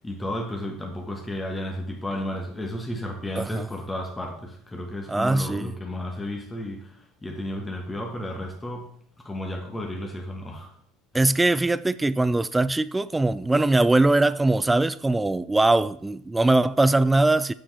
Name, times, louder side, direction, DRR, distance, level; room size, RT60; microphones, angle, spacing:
voice 1, 0.0-8.9 9.2-10.7, left 1 dB, 10° left, 1.3 m, -33 dB
voice 2, 3.4-3.7 5.1-5.7 11.1-17.5, right 2 dB, 10° right, 0.3 m, -21 dB
7.3 x 7.0 x 3.4 m
supercardioid pair, 115°, 0 cm